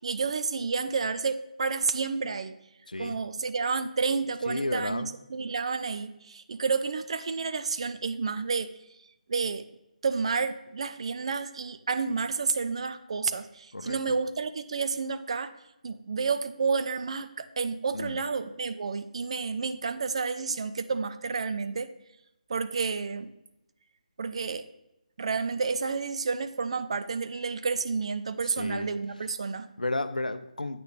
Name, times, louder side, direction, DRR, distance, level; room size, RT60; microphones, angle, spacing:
voice 1, 0.0-2.5 3.0-8.7 9.3-9.6 10.0-15.5 15.8-21.9 22.5-23.3 24.2-24.6 25.2-29.7, right 5 dB, 45° right, 11 dB, 0.5 m, -30 dB
voice 2, 4.5-5.1 13.7-14.0 17.9-18.2 28.4-28.9 29.8-30.8, left 2 dB, 80° left, 12 dB, 0.5 m, -32 dB
8.5 x 6.4 x 3.3 m, 0.88 s
figure-of-eight pair, 150°, 4 cm